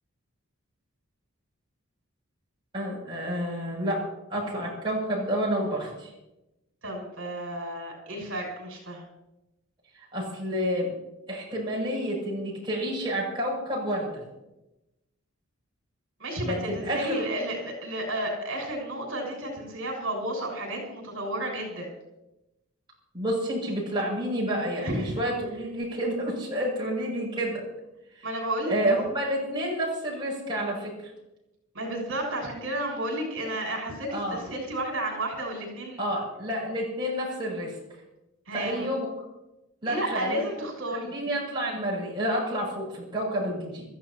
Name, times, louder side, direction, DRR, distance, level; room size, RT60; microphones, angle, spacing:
voice 1, 2.7-4.0 4.3-6.1 10.1-10.9 11.3-14.1 16.4-17.3 23.1-27.6 28.7-31.1 34.1-34.4 36.0-37.7 38.5-39.1 39.8-40.4 40.9-43.9, equal, 20° right, -5 dB, 7.5 m, -29 dB
voice 2, 6.8-9.0 16.2-21.9 24.8-25.1 28.2-28.8 31.7-36.0 38.5-38.9 39.9-41.1, right 1 dB, 65° right, 0 dB, 6.9 m, -32 dB
26.0 x 15.0 x 3.0 m, 0.95 s
head